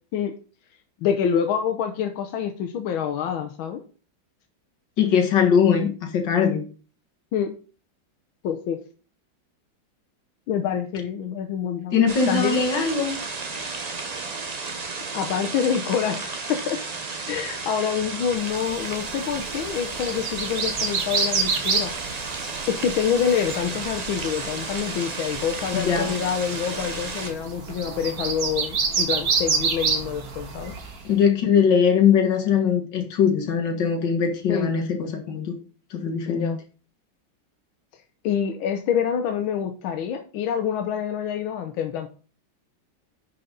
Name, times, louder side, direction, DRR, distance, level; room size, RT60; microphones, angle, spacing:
voice 1, 1.0-3.8 7.3-7.5 8.4-8.8 10.5-11.9 12.3-12.6 15.1-16.8 17.3-21.9 22.7-30.7 34.5-34.7 36.3-36.6 38.2-42.1, left 8 dB, 85° left, 6 dB, 1.6 m, -26 dB
voice 2, 5.0-6.6 11.9-13.1 25.7-26.1 31.0-35.5 35.9-36.5, left 7 dB, 65° left, 3 dB, 2.2 m, -21 dB
sound 1, 12.1-27.3, right 4 dB, 35° right, 0.6 m, -33 dB
sound 2, 18.6-31.1, right 5 dB, 50° right, 1.7 m, -29 dB
10.0 x 5.2 x 3.9 m, 0.37 s
omnidirectional pair, 2.1 m